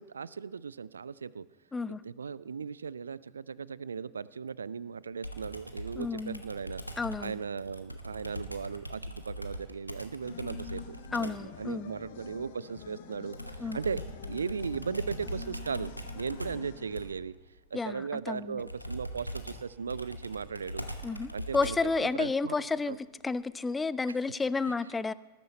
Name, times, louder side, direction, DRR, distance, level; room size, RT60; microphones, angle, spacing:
voice 1, 0.0-1.5 1.9-6.8 7.2-14.0 14.3-17.3 17.7-20.9 21.3-23.0 24.1-24.2 24.7-24.8, right 6 dB, 70° right, 20 dB, 0.3 m, -37 dB
Computer keyboard, 5.2-11.5 13.3-22.0, equal, 90° left, 0.9 m, -42 dB
voice 2, 6.0-6.4 7.0-7.3 11.1-11.9 13.6-13.8 17.7-18.6 21.0-23.0 23.2-25.1, left 4 dB, 15° left, 18 dB, 0.4 m, -31 dB
sound 1, 10.2-17.0, left 9 dB, 55° left, 1.0 m, -47 dB
19.0 x 9.5 x 4.3 m, 1.4 s
figure-of-eight pair, 90°, 0 cm